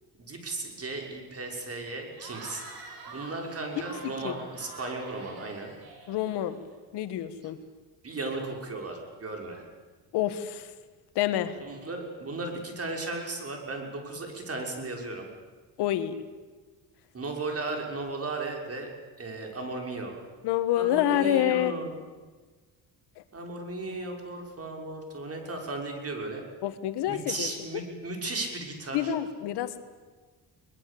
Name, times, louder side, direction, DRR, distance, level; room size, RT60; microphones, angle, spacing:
voice 1, 0.2-2.6 3.1-5.7 8.0-9.6 11.6-15.3 17.1-18.9 19.2-20.2 20.7-21.9 23.3-26.4 27.1-29.1, right 3 dB, 35° right, 2 dB, 6.1 m, -35 dB
Cheering / Crowd, 2.1-6.7, right 3 dB, 65° right, 6.5 m, -46 dB
voice 2, 4.0-4.3 6.1-6.6 6.9-7.6 10.1-10.7 11.1-11.6 15.8-16.2 20.4-21.7 23.2-23.3 26.6-27.5 28.9-29.8, left 12 dB, 85° left, 11 dB, 1.6 m, -27 dB
22.5 x 20.5 x 8.6 m, 1.4 s
cardioid pair, 95°, 39 cm